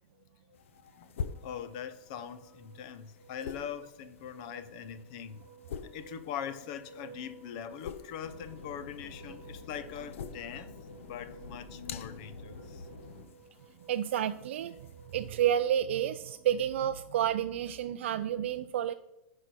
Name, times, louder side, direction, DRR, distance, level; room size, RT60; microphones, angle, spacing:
sound 1, 0.5-15.4, left 7 dB, 85° left, 0.6 m, -47 dB
voice 1, 0.5-1.1 1.4-5.4 5.9-10.7 11.0-12.9, left 8 dB, 35° left, 0.5 m, -42 dB
sound 2, 1.1-17.6, right 4 dB, 5° right, 2.1 m, -56 dB
sound 3, 8.2-13.2, left 3 dB, 60° left, 1.3 m, -48 dB
voice 2, 13.9-14.8 15.1-18.9, right 10 dB, 65° right, 0.3 m, -30 dB
10.5 x 4.8 x 4.2 m
supercardioid pair, 180°, 7 cm